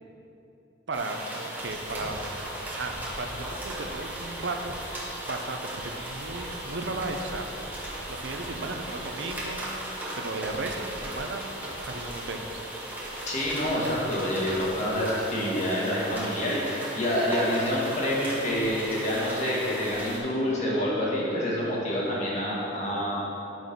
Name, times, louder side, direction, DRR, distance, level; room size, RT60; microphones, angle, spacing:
sound 1, 0.9-20.2, right 1 dB, 10° right, 1.2 m, -37 dB
voice 1, 0.9-2.3 2.6-4.8 5.2-7.5 8.1-9.7 10.2-11.4 11.8-12.6, right 3 dB, 65° right, 5 dB, 0.6 m, -35 dB
voice 2, 13.3-23.2, equal, 40° left, -5 dB, 1.7 m, -27 dB
6.2 x 6.2 x 5.2 m, 2.9 s
head